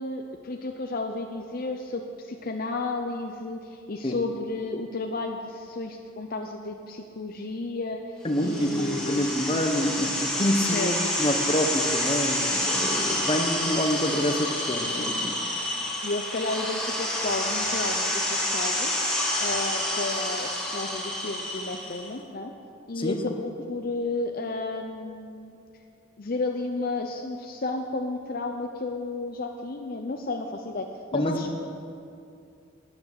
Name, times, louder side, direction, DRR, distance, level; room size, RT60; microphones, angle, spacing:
voice 1, 0.0-9.3 10.7-11.2 16.0-18.9 19.4-22.5 22.9-25.5 26.2-30.9 31.1-31.6, left 2 dB, 45° left, 4 dB, 0.7 m, -32 dB
voice 2, 8.2-15.4 23.0-23.2 31.1-31.4, equal, 25° left, 4 dB, 1.1 m, -27 dB
sound 1, 8.3-22.1, left 1 dB, 5° left, 2.0 m, -28 dB
12.0 x 9.7 x 7.9 m, 2.5 s
head